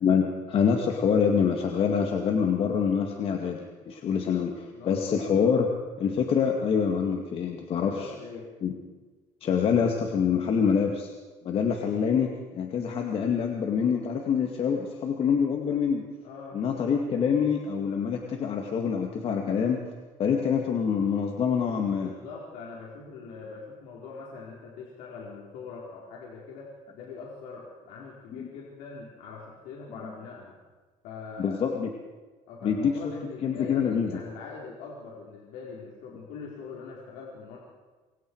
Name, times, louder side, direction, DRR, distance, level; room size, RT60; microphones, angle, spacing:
voice 1, 0.0-5.7 6.0-8.1 8.6-8.7 9.4-11.1 11.4-16.0 16.5-19.8 20.2-22.1 28.3-28.5 31.4-31.9 32.6-32.9 33.4-34.2, left 6 dB, 45° left, 2 dB, 2.2 m, -26 dB
voice 2, 4.7-5.2 7.8-8.5 16.2-16.6 22.0-30.6 31.0-31.6 32.5-37.6, left 4 dB, 80° left, -3 dB, 4.5 m, -42 dB
27.5 x 24.0 x 4.8 m, 1.3 s
cardioid pair, 130°, 13 cm